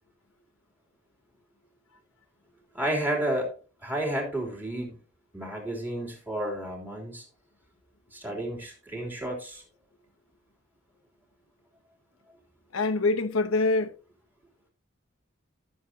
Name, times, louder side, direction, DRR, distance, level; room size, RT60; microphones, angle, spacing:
voice 1, 2.7-3.5 3.8-5.0 5.3-7.2 8.1-9.6, right 1 dB, 10° right, 3.3 m, -31 dB
voice 2, 12.7-13.9, left 3 dB, 85° left, 0.9 m, -25 dB
13.0 x 7.3 x 2.8 m
head